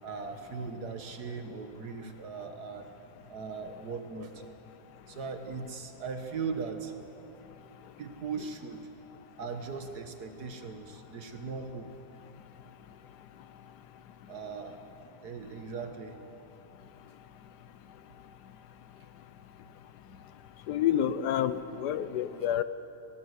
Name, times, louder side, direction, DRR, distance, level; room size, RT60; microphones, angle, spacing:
voice 1, 0.0-2.9 3.3-4.4 5.1-6.9 8.0-8.9 9.4-11.9 14.3-14.8 15.2-16.2, right 5 dB, 80° right, 6 dB, 1.8 m, -39 dB
voice 2, 20.7-22.6, left 10 dB, 85° left, 13 dB, 1.4 m, -28 dB
19.0 x 18.5 x 8.1 m, 2.9 s
omnidirectional pair, 1.7 m